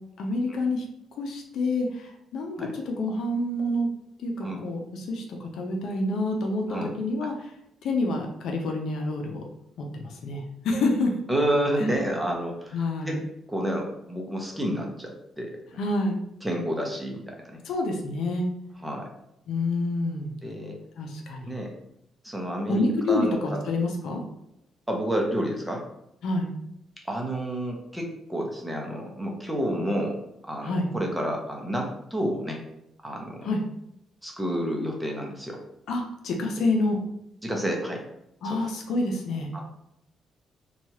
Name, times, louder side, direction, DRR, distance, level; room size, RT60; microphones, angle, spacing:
voice 1, 0.2-0.9 1.1-3.9 4.2-7.5 7.8-9.4 9.8-11.1 11.8-11.9 12.7-13.2 15.8-16.2 17.6-18.5 19.5-20.3 21.0-21.6 22.7-24.2 26.2-26.5 30.6-30.9 33.4-33.6 35.9-37.0 38.4-39.5, left 2 dB, 75° left, 2 dB, 0.5 m, -28 dB
voice 2, 11.3-13.2 13.5-15.6 16.4-17.6 18.8-19.1 20.4-20.8 21.5-21.7 22.2-23.6 24.9-25.8 27.1-30.2 30.4-32.6 33.0-33.5 34.2-35.6 37.4-38.0 38.4-38.6 39.5-39.6, equal, 5° right, 0 dB, 0.7 m, -29 dB
2.9 x 2.3 x 2.8 m, 0.80 s
cardioid pair, 90°, 0 cm